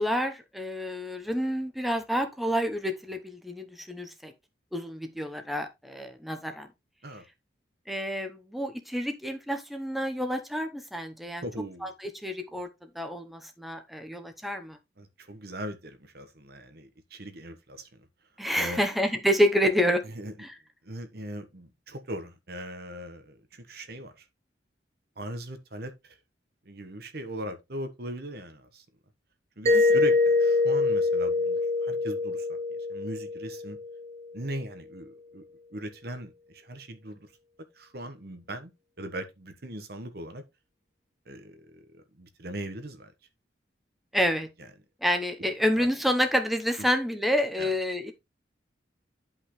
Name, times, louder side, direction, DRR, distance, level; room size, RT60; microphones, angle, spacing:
voice 1, 0.0-4.3 4.7-6.7 7.9-11.4 11.8-12.7 12.9-14.8 18.4-20.0 20.4-20.5 29.7-29.8 44.1-44.5 45.0-48.1, equal, ahead, 0.8 m, -28 dB
voice 2, 11.4-11.9 15.0-17.9 18.6-18.8 20.0-20.3 20.8-24.3 25.2-26.2 26.6-28.8 29.6-32.6 32.9-33.8 34.3-35.4 35.7-37.3 37.7-38.7 39.0-40.4 41.3-43.1 45.8-45.9 47.6-47.7, right 1 dB, 60° right, 1.2 m, -39 dB
Mallet percussion, 29.7-34.3, left 3 dB, 40° right, 0.7 m, -25 dB
10.5 x 5.5 x 3.1 m
head